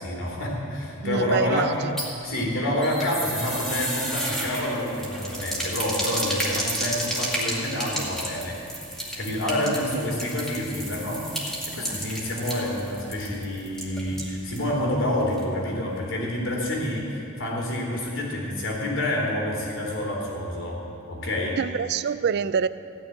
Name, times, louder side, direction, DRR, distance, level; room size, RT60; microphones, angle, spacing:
voice 1, 0.0-1.7 2.2-8.6 9.1-11.2 11.7-20.8 21.1-21.6, left 1 dB, 60° left, 3.4 m, -28 dB
voice 2, 1.0-2.0 9.7-9.8 21.6-22.7, right 6 dB, 50° right, 0.4 m, -26 dB
sound 1, 1.7-14.7 15.0-15.1 15.4-15.5, right 1 dB, ahead, 2.2 m, -32 dB
15.5 x 6.4 x 9.4 m
head